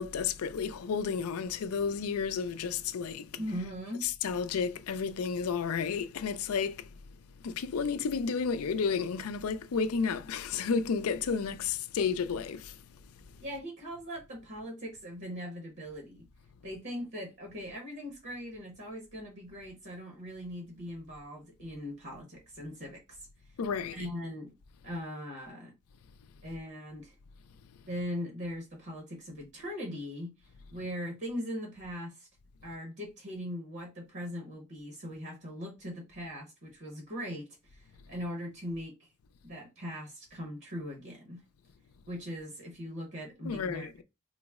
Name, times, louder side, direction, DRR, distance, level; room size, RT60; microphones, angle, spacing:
voice 1, 0.0-3.4 4.0-7.0 7.4-13.4 23.6-24.1 27.7-27.8 43.4-44.0, left 6 dB, 70° left, 0.4 m, -32 dB
voice 2, 3.4-4.1 13.4-16.3 16.6-23.3 23.9-24.5 24.8-25.7 26.4-27.1 27.9-32.3 32.6-38.9 39.4-41.4 42.1-43.9, equal, 50° right, 1.0 m, -40 dB
3.8 x 2.0 x 3.5 m
head